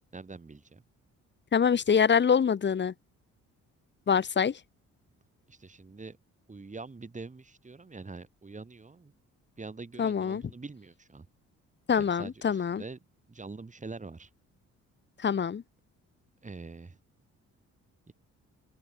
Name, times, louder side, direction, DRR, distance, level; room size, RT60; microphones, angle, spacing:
voice 1, 0.1-0.8 5.5-6.2 6.5-9.1 9.6-11.3 12.0-13.0 13.3-14.3 16.4-17.0 18.1-18.2, right 3 dB, 25° right, 6.3 m, -44 dB
voice 2, 1.5-2.9 4.1-4.6 10.0-10.4 11.9-12.8 15.2-15.6, left 7 dB, 35° left, 1.1 m, -25 dB
cardioid pair, 90°, 30 cm